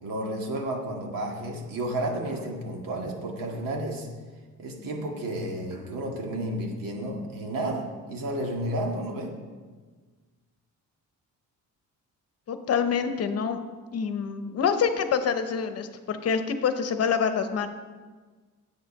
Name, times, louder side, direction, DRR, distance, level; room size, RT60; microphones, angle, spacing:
voice 1, 0.0-4.1 4.6-9.3, right 1 dB, 90° right, 1 dB, 2.0 m, -32 dB
sound 1, 2.2-2.7 3.4-3.9 5.7-6.1, left 1 dB, 60° right, 3.0 m, -50 dB
voice 2, 12.5-13.6 13.9-17.7, left 6 dB, 50° left, 9 dB, 0.8 m, -26 dB
10.0 x 8.1 x 5.4 m, 1.4 s
cardioid pair, 165°, 33 cm